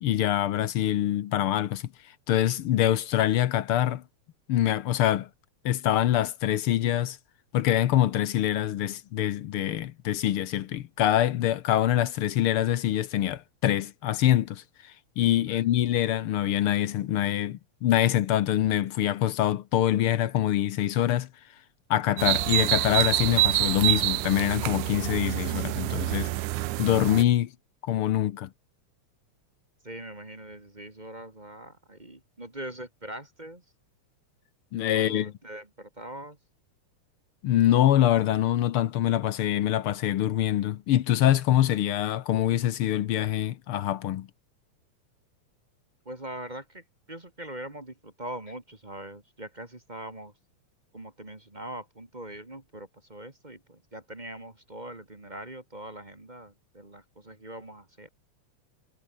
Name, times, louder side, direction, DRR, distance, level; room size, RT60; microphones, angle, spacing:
voice 1, 0.0-4.0 4.5-5.3 5.6-7.2 7.5-21.3 21.9-26.3 26.8-27.5 27.8-28.5 34.7-35.3 37.4-44.3, left 12 dB, 65° left, 1.4 m, -25 dB
sound 1, 22.2-27.2, right 18 dB, 85° right, 2.2 m, -26 dB
voice 2, 29.8-33.6 34.9-36.4 46.1-50.3 50.9-58.1, right 1 dB, 15° right, 2.1 m, -42 dB
omnidirectional pair, 3.4 m